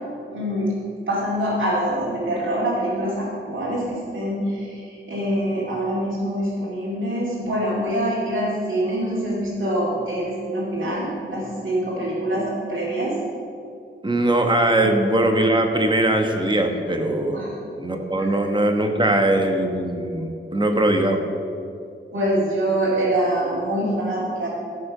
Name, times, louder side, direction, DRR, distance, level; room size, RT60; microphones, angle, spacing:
voice 1, 0.3-0.7 1.1-13.2 14.8-14.9 17.3-17.5 18.2-18.3 22.1-24.5, right 1 dB, 65° right, -8 dB, 2.6 m, -25 dB
voice 2, 14.0-17.5 17.8-21.2, right 1 dB, 20° right, 3 dB, 1.2 m, -21 dB
14.0 x 5.2 x 6.6 m, 2.5 s
wide cardioid pair, 100°, 21 cm